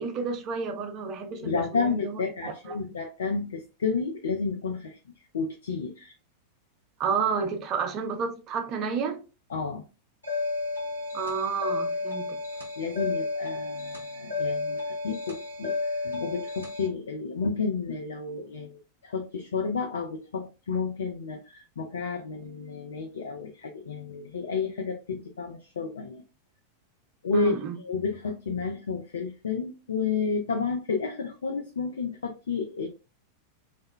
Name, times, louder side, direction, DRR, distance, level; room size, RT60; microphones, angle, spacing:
voice 1, 0.0-2.8 7.0-9.2 11.1-12.4 27.3-27.8, right 5 dB, 35° right, 0.4 m, -31 dB
voice 2, 1.4-5.0 5.3-6.1 9.5-9.8 12.8-26.2 27.2-27.5 27.8-32.9, left 5 dB, 65° left, 0.3 m, -31 dB
sound 1, 10.2-16.9, left 3 dB, 85° left, 0.8 m, -32 dB
2.1 x 2.0 x 3.5 m
figure-of-eight pair, 90°, 0 cm